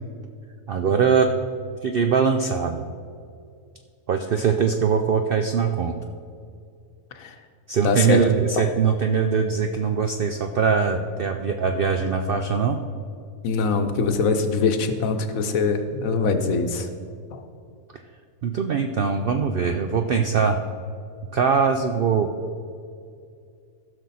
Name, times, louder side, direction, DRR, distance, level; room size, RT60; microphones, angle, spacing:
voice 1, 0.7-1.3 1.8-2.8 4.1-6.0 7.7-12.8 18.4-20.6 21.3-22.3, right 6 dB, 70° right, 5 dB, 0.5 m, -22 dB
voice 2, 7.8-8.6 13.4-16.9 17.3-17.4, left 4 dB, 70° left, 6 dB, 1.2 m, -23 dB
15.5 x 6.1 x 4.2 m, 2.4 s
omnidirectional pair, 1.6 m